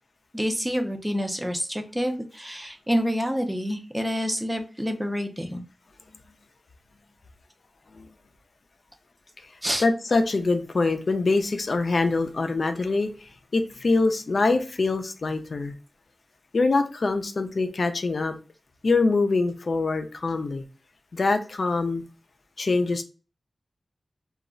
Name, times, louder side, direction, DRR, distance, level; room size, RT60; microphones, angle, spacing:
voice 1, 0.3-5.6 9.6-9.8, equal, 5° right, 5 dB, 0.5 m, -28 dB
voice 2, 9.8-13.1 13.5-15.7 16.5-18.3 18.8-20.6 21.1-22.0 22.6-23.0, left 3 dB, 55° left, 7 dB, 0.4 m, -24 dB
2.3 x 2.0 x 3.7 m, 0.35 s
wide cardioid pair, 110°, 0 cm